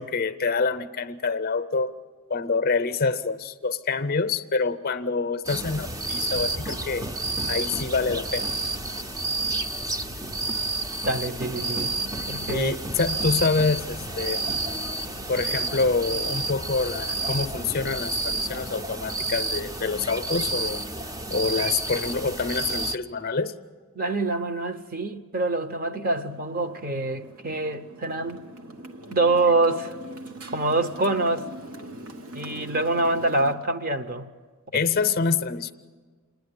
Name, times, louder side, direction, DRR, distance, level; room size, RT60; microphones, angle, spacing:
voice 1, 0.0-1.9 2.3-7.1 7.5-8.5 12.5-14.4 15.3-20.8 21.3-23.5 34.7-35.7, left 4 dB, 40° left, 0.6 m, -26 dB
sound 1, 5.4-23.0, right 2 dB, 15° right, 0.5 m, -30 dB
voice 2, 11.0-11.9 12.3-12.8 23.9-28.4 29.1-30.0 30.5-31.5 32.3-34.3, right 2 dB, 40° right, 0.8 m, -25 dB
Motorcycle, 26.3-33.6, right 1 dB, 85° right, 1.3 m, -42 dB
27.0 x 10.5 x 9.6 m
head